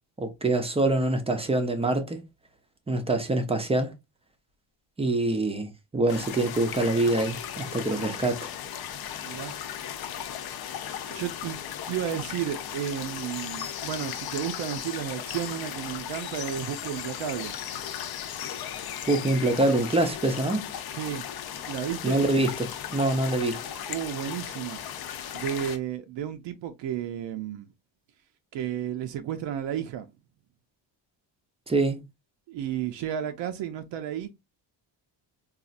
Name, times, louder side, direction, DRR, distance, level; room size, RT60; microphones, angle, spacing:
voice 1, 0.2-2.2 2.9-3.9 5.0-8.4 19.1-20.6 22.0-23.6 31.7-32.0, right 2 dB, 15° right, 0.4 m, -25 dB
sound 1, 6.1-25.8, left 9 dB, 55° left, 0.6 m, -36 dB
voice 2, 9.2-9.5 11.1-17.6 20.9-21.3 21.5-22.2 23.9-24.8 25.3-27.7 28.5-30.1 32.5-34.3, right 10 dB, 75° right, 0.5 m, -32 dB
4.1 x 2.4 x 2.4 m
cardioid pair, 155°, 44 cm